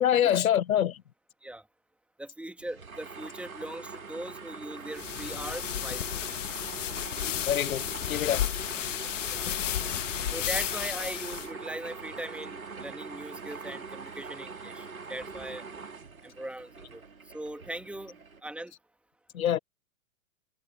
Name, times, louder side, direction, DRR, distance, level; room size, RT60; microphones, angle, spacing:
voice 1, 0.0-1.0 7.5-8.5 19.3-19.6, left 10 dB, 85° left, 0.6 m, -25 dB
voice 2, 2.2-6.2 9.3-9.5 10.3-15.6 16.2-17.0 17.3-18.7, right 1 dB, 5° right, 2.3 m, -40 dB
sound 1, 2.6-18.4, right 4 dB, 85° right, 2.3 m, -43 dB
sound 2, 4.9-11.5, left 12 dB, 65° left, 1.1 m, -33 dB
figure-of-eight pair, 105°, 41 cm